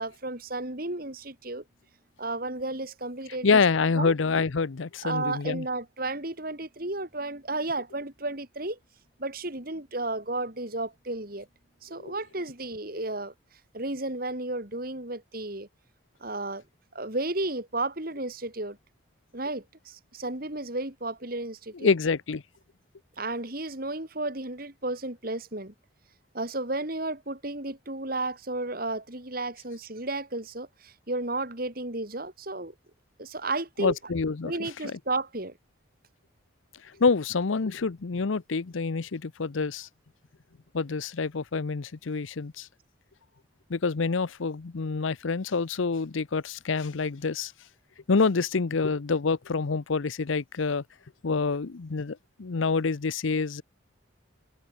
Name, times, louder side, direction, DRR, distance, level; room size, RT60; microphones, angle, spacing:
voice 1, 0.0-1.6 2.2-3.6 3.9-4.1 5.0-8.8 9.2-11.5 11.8-13.3 13.7-15.7 16.2-16.6 16.9-18.8 19.3-21.9 23.2-25.7 26.3-32.7 33.2-33.9 34.4-35.5, right 2 dB, 45° right, 3.4 m, -33 dB
voice 2, 3.4-5.7 12.0-12.1 21.7-22.4 33.8-35.0 37.0-39.9 40.7-42.7 43.7-47.5 48.1-50.8 51.2-53.6, left 4 dB, 80° left, 0.7 m, -27 dB
head